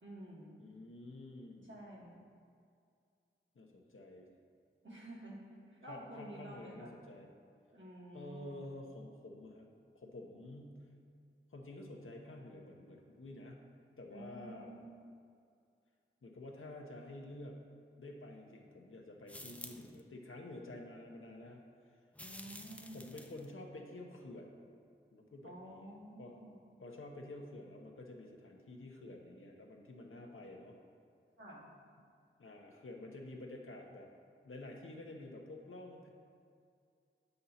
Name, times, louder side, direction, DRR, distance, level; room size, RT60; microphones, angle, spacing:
voice 1, 0.0-0.6 1.6-2.2 4.8-5.4 5.7-6.9 7.7-8.6 14.1-14.8 22.2-23.0 25.4-26.7 31.4-31.7, right 1 dB, 65° right, -5 dB, 1.9 m, -50 dB
voice 2, 0.6-1.7 3.5-4.3 5.8-7.3 8.1-9.7 9.9-10.8 11.5-13.6 14.0-14.7 16.2-17.7 18.0-21.6 22.9-24.6 25.1-25.9 26.2-26.3 26.8-30.7 32.4-34.1 34.4-36.1, left 1 dB, 75° left, 1 dB, 1.0 m, -50 dB
sound 1, 19.3-20.0 22.1-23.5, left 1 dB, 5° left, 0.6 m, -50 dB
7.8 x 5.5 x 4.3 m, 2.3 s
wide cardioid pair, 55°, 21 cm